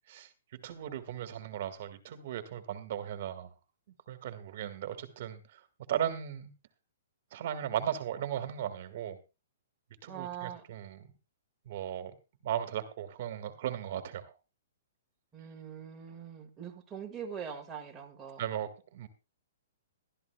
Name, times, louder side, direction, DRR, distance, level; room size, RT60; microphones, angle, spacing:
voice 1, 0.6-3.5 4.1-5.6 5.9-6.5 7.3-9.2 10.0-11.1 11.6-12.1 12.4-14.3 18.4-19.1, right 10 dB, 45° right, 1.6 m, -36 dB
voice 2, 10.1-10.6 15.3-18.4, right 8 dB, 10° right, 1.6 m, -42 dB
21.0 x 12.5 x 2.2 m
hypercardioid pair, 170°, 0 cm